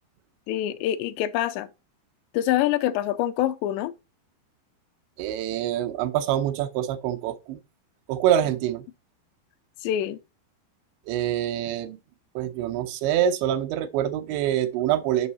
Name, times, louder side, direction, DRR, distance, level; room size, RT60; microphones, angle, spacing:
voice 1, 0.5-1.7 2.3-3.9 9.8-10.2, left 12 dB, 90° left, 2.8 m, -25 dB
voice 2, 5.2-7.6 8.1-8.9 11.1-12.0 12.4-15.3, right 11 dB, 90° right, 3.0 m, -25 dB
7.2 x 5.5 x 4.0 m
omnidirectional pair, 5.0 m